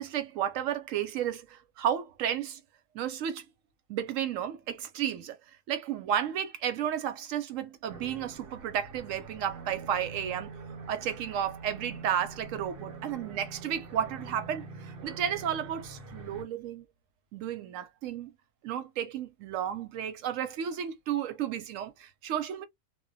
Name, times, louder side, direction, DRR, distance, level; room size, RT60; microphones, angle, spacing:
voice 1, 0.0-2.6 2.9-3.5 3.9-5.4 5.7-10.5 10.9-16.9 17.3-18.3 18.6-22.6, right 9 dB, 85° right, 1.0 m, -32 dB
sound 1, 7.9-16.4, right 4 dB, 55° right, 0.9 m, -45 dB
2.2 x 2.2 x 2.6 m
omnidirectional pair, 1.3 m